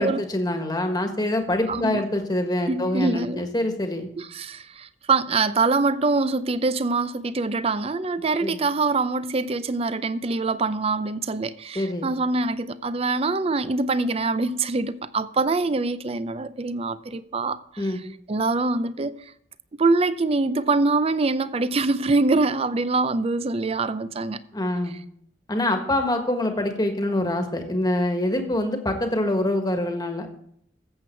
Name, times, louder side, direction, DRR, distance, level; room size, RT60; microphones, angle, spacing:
voice 1, 0.0-4.1 8.4-8.6 11.7-12.1 17.8-18.0 24.5-24.9 25.5-30.3, left 1 dB, 20° left, 1.5 m, -25 dB
voice 2, 1.7-2.0 2.7-3.4 4.2-17.9 18.3-19.2 19.8-24.4, right 3 dB, 30° right, 0.5 m, -24 dB
14.5 x 7.7 x 4.5 m
head